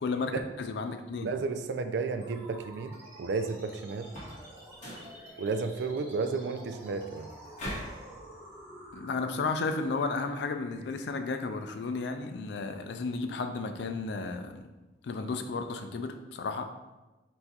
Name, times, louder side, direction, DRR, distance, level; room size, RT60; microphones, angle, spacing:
voice 1, 0.0-1.3 8.9-14.6 15.0-16.7, left 4 dB, 65° left, 7 dB, 0.4 m, -33 dB
voice 2, 1.2-4.1 5.4-7.3, right 4 dB, 65° right, 8 dB, 0.3 m, -32 dB
sound 1, 2.2-13.2, right 1 dB, 15° right, 1.1 m, -50 dB
sound 2, 4.0-4.4 4.7-5.1 7.6-8.0, equal, 45° left, 1.5 m, -39 dB
4.6 x 4.1 x 2.3 m, 1.1 s
head